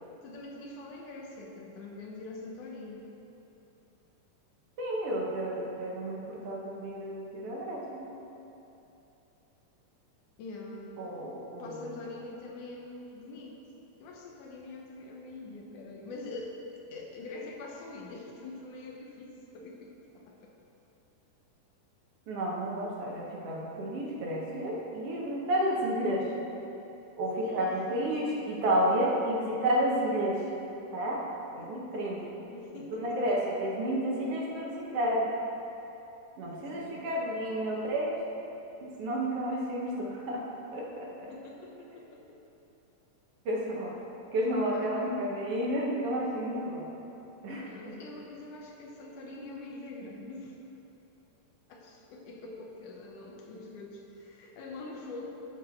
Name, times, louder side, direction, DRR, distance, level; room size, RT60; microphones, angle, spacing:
voice 1, 0.2-3.1 10.4-11.0 11.6-13.6 14.0-20.6 27.4-27.8 31.6-31.8 32.2-33.5 36.7-37.1 41.3-42.4 44.4-45.0 47.5-50.6 51.7-55.3, left 2 dB, 75° left, 0 dB, 2.3 m, -44 dB
voice 2, 4.8-8.0 11.0-12.0 22.3-26.3 27.2-30.4 30.9-31.2 31.5-32.2 32.7-35.3 36.4-38.2 38.8-40.4 40.7-41.3 43.4-43.9 44.3-46.8 47.4-47.9, right 1 dB, 60° right, -3 dB, 1.7 m, -31 dB
13.5 x 4.6 x 4.5 m, 2.9 s
omnidirectional pair, 3.8 m